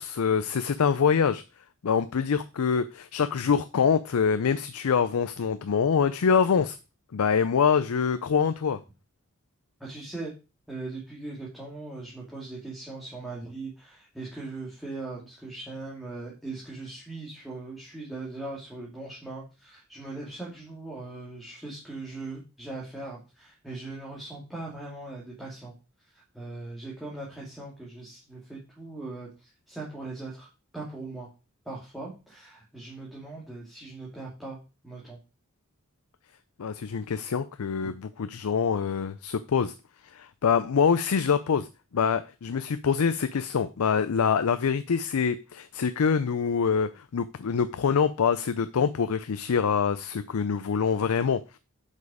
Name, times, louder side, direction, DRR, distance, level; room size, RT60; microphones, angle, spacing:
voice 1, 0.0-1.4 1.8-6.8 7.1-8.8 36.6-39.7 40.0-41.7 41.9-51.6, left 6 dB, 90° left, 12 dB, 0.5 m, -25 dB
voice 2, 9.8-10.3 10.7-25.7 26.1-30.5 30.7-31.3 31.6-34.6 34.8-35.2 37.8-37.9, right 2 dB, ahead, -6 dB, 2.2 m, -40 dB
8.0 x 5.4 x 4.9 m, 0.30 s
head